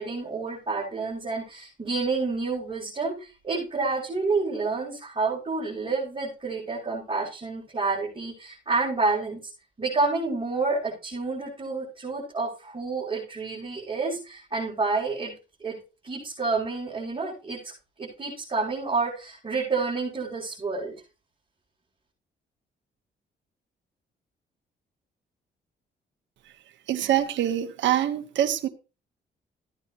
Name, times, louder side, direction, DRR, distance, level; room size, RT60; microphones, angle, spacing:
voice 1, 0.0-9.5 9.8-15.3 15.6-15.8 16.0-17.7 18.0-20.9, right 3 dB, 30° right, 6.7 m, -29 dB
voice 2, 26.9-28.7, right 11 dB, 80° right, 1.4 m, -24 dB
16.0 x 9.5 x 3.1 m
cardioid pair, 90°, 19 cm